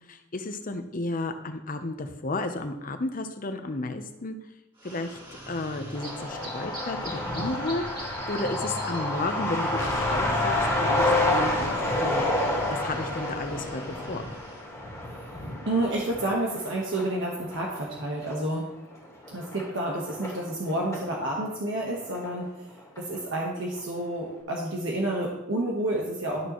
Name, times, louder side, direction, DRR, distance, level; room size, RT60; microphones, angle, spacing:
voice 1, 0.1-4.4 4.8-5.2 5.5-11.7 12.0-12.3 12.7-14.2, left 2 dB, 45° left, 8 dB, 0.8 m, -33 dB
sound 1, 4.8-14.7, right 1 dB, 25° right, 2.4 m, -40 dB
Truck, 5.9-21.1 21.4-21.5 21.8-22.7 23.0-23.1 23.4-23.8, left 1 dB, 15° left, 2.4 m, -30 dB
sound 2, 9.7-14.6, left 2 dB, 75° left, 1.0 m, -37 dB
voice 2, 15.1-18.7 19.3-22.5 23.0-26.5, right 1 dB, 65° right, -2 dB, 1.3 m, -30 dB
12.0 x 6.7 x 3.1 m, 0.98 s
head